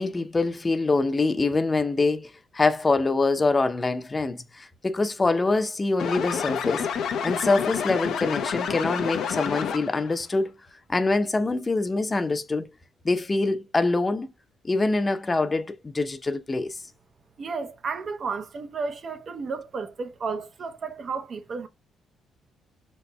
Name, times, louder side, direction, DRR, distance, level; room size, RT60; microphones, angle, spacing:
voice 1, 0.0-6.9 7.2-10.5 10.9-12.7 13.0-14.3 14.6-16.8, left 3 dB, 25° left, 0.6 m, -25 dB
sound 1, 6.0-10.1, left 7 dB, 75° left, 0.6 m, -29 dB
voice 2, 17.4-21.7, right 4 dB, 50° right, 0.7 m, -32 dB
5.2 x 4.2 x 2.2 m
cardioid pair, 90°, 0 cm